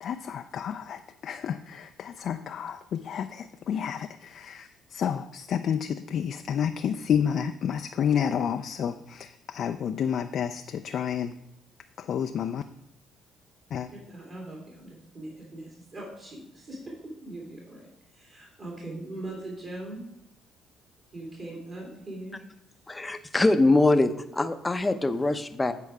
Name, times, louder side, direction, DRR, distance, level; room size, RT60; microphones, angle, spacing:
voice 1, 0.0-11.3 12.0-12.6 13.7-13.9, left 8 dB, 60° left, 7 dB, 0.3 m, -30 dB
voice 2, 13.9-16.8 17.2-17.8 18.1-20.0 21.1-22.4, right 2 dB, 45° right, -5 dB, 2.7 m, -40 dB
voice 3, 22.9-25.7, left 2 dB, 20° left, 10 dB, 0.6 m, -23 dB
8.3 x 4.5 x 4.8 m, 0.83 s
supercardioid pair, 75°, 0 cm